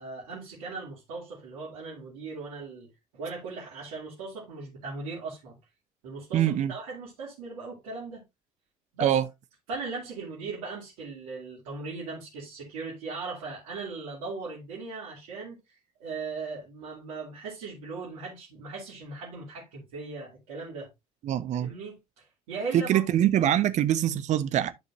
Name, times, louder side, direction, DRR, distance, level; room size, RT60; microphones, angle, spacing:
voice 1, 0.0-5.6 6.0-8.2 8.9-9.2 9.7-20.9 21.5-23.0, right 4 dB, 60° right, 2.7 m, -38 dB
voice 2, 6.3-6.7 9.0-9.2 21.2-21.7 22.7-24.7, right 11 dB, 40° right, 0.7 m, -24 dB
11.5 x 5.2 x 2.5 m
figure-of-eight pair, 55°, 18 cm